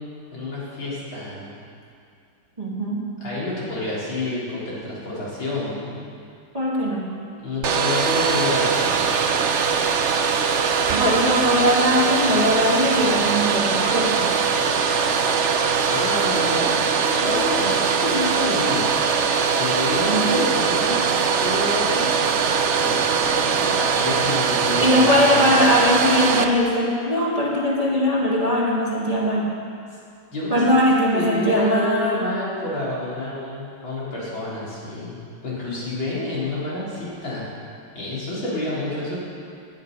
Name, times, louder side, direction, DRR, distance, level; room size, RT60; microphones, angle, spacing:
voice 1, 0.0-1.5 3.2-5.9 7.4-9.3 15.8-18.9 19.6-21.1 21.4-22.1 22.9-25.5 30.3-30.6 31.1-37.5 37.9-39.2, left 2 dB, 85° left, -8 dB, 4.7 m, -29 dB
voice 2, 2.6-3.0 6.5-7.1 10.9-14.3 20.1-20.5 24.8-29.5 30.5-32.3, equal, 20° right, -4 dB, 1.8 m, -20 dB
Domestic sounds home sounds, 7.6-26.4, right 6 dB, 60° right, 0.7 m, -21 dB
16.5 x 11.0 x 5.4 m, 2.4 s
omnidirectional pair, 2.1 m